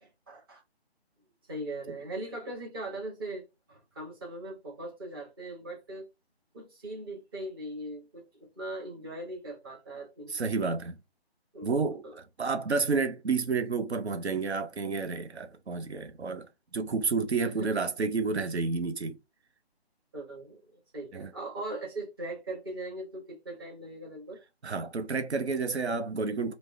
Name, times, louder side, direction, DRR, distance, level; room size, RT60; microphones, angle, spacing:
voice 1, 0.0-0.6 1.5-6.0 6.5-10.4 11.5-11.7 12.0-12.2 17.4-17.7 20.1-24.4, right 1 dB, 20° right, 0.8 m, -40 dB
voice 2, 10.3-11.0 11.6-16.5 16.7-19.2 21.1-21.3 24.6-26.5, right 4 dB, 85° right, 0.6 m, -30 dB
3.2 x 2.0 x 2.5 m
figure-of-eight pair, 150°, 32 cm